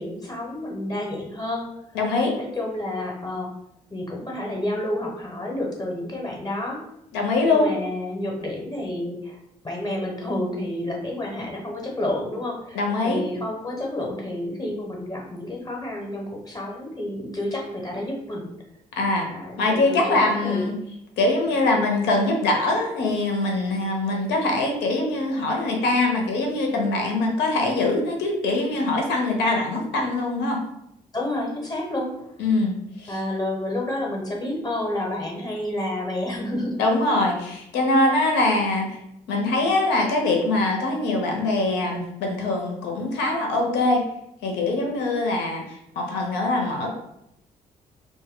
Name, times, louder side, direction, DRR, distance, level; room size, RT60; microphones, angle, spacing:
voice 1, 0.0-1.7 2.4-3.5 3.9-6.8 7.4-9.4 9.6-18.5 19.3-20.6 31.1-32.1 33.1-36.7, left 1 dB, 20° left, -1 dB, 1.0 m, -30 dB
voice 2, 1.9-2.4 7.1-7.7 12.7-13.2 19.0-19.3 19.6-20.8 21.2-30.6 32.4-33.2 36.8-39.0 39.3-44.0 44.4-46.9, left 2 dB, 60° left, 1 dB, 0.7 m, -23 dB
3.0 x 2.1 x 3.6 m, 0.79 s
figure-of-eight pair, 40°, 20 cm